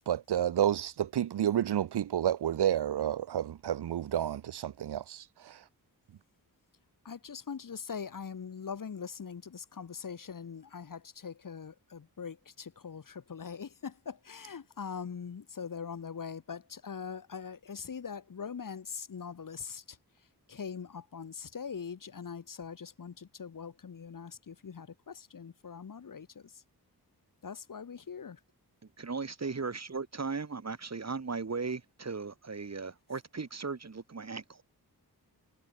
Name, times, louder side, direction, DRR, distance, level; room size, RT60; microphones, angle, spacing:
voice 1, 0.0-5.6, right 10 dB, 85° right, 0.9 m, -30 dB
voice 2, 7.0-20.0 20.5-26.6 27.4-28.4, left 6 dB, 55° left, 1.6 m, -42 dB
voice 3, 29.0-34.6, right 4 dB, 40° right, 2.6 m, -37 dB
cardioid pair, 75°, 39 cm